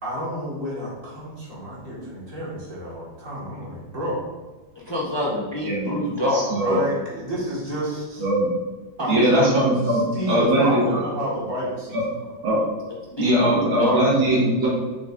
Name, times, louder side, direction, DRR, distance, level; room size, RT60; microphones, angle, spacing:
voice 1, 0.0-4.3 6.6-8.3 9.0-9.4 9.8-12.0, equal, 40° right, -6 dB, 2.1 m, -30 dB
voice 2, 4.9-6.4 9.1-9.5 13.1-14.0, left 1 dB, 35° left, -4 dB, 0.4 m, -25 dB
voice 3, 5.6-6.0 6.3-6.8 8.2-8.5 9.1-10.0 10.3-10.8 11.9-12.0 12.4-12.6 13.2-14.7, right 1 dB, 75° right, -5 dB, 2.5 m, -20 dB
6.2 x 6.2 x 2.6 m, 1.2 s
omnidirectional pair, 2.2 m